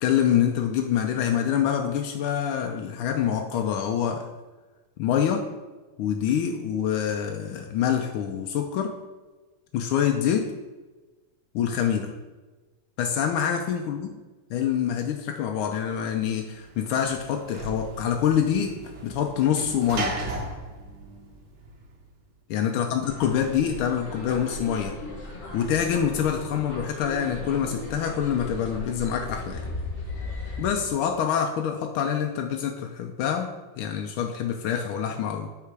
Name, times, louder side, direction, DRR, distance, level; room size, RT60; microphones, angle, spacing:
voice 1, 0.0-4.2 5.0-5.5 6.0-8.9 9.7-10.5 11.5-12.1 13.0-14.1 14.5-18.8 19.0-20.2 22.5-24.9 25.5-29.6 30.6-35.5, left 8 dB, 85° left, 4 dB, 1.4 m, -26 dB
Sliding door / Slam, 16.2-22.1, right 2 dB, 70° right, 1.8 m, -36 dB
sound 1, 23.0-30.7, left 1 dB, 35° left, 1.4 m, -36 dB
9.0 x 3.8 x 4.6 m, 1.2 s
omnidirectional pair, 2.3 m